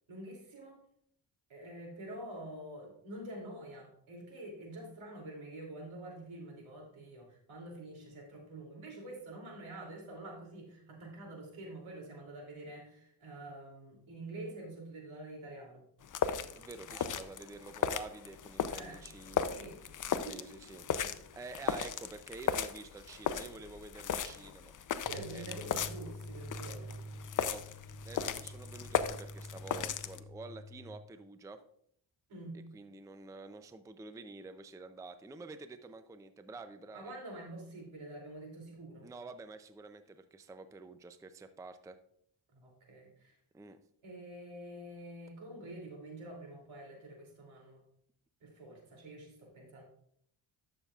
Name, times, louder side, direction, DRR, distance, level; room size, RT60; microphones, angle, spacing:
voice 1, 0.1-0.8 1.5-15.8 17.0-17.1 18.7-19.0 19.3-19.8 20.2-20.5 20.9-21.1 25.0-27.0 32.3-32.6 36.9-39.1 42.5-43.3 44.0-47.8 48.4-49.8, right 1 dB, 80° right, 0 dB, 2.9 m, -47 dB
sound 1, 16.0-30.2, left 8 dB, 40° left, 0.5 m, -37 dB
voice 2, 16.5-20.8 21.3-24.8 25.3-25.8 27.3-27.7 28.0-31.6 32.7-37.1 39.0-42.0 43.5-43.8, right 3 dB, 5° right, 10 dB, 0.4 m, -49 dB
sound 2, 25.0-31.0, equal, 45° right, 2.5 m, -47 dB
11.0 x 6.9 x 2.4 m, 0.67 s
cardioid pair, 90°, 48 cm